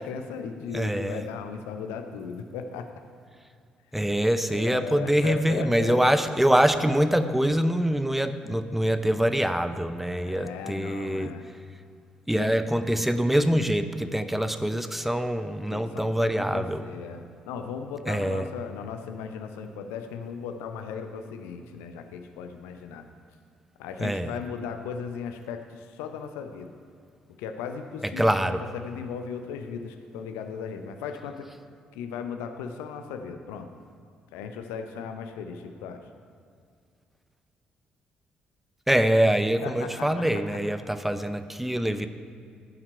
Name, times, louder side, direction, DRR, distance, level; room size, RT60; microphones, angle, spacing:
voice 1, 0.0-2.9 4.5-6.0 10.2-11.5 12.4-12.6 15.7-23.0 23.8-26.7 27.3-31.5 31.9-33.7 34.3-36.1 39.6-40.2, left 6 dB, 70° left, 7 dB, 0.7 m, -37 dB
voice 2, 0.7-1.2 3.9-11.3 12.3-16.8 18.1-18.5 24.0-24.3 28.2-28.6 38.9-42.1, equal, 5° right, 10 dB, 0.6 m, -24 dB
14.5 x 5.8 x 4.5 m, 2.3 s
figure-of-eight pair, 45°, 4 cm